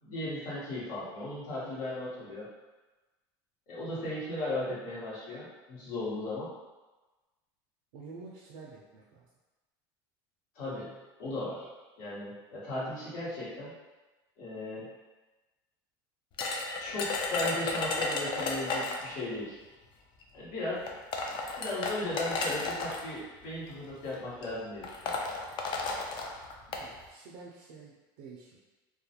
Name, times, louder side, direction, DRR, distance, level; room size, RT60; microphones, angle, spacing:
voice 1, 0.0-2.5 3.7-6.5 10.5-10.9 11.2-11.7 12.0-13.7 14.4-14.9 16.8-19.6 20.3-20.9 21.6-25.2, left 1 dB, 75° left, -8 dB, 1.2 m, -36 dB
voice 2, 7.9-9.3 26.7-28.6, right 4 dB, 80° right, -4 dB, 0.4 m, -49 dB
sound 1, 16.4-19.1 20.2-20.3 20.9-23.0 23.9-24.1 24.4-24.5 24.8-26.9, left 3 dB, 45° left, 0.4 m, -33 dB
2.3 x 2.2 x 2.8 m, 1.2 s
supercardioid pair, 120°, 11 cm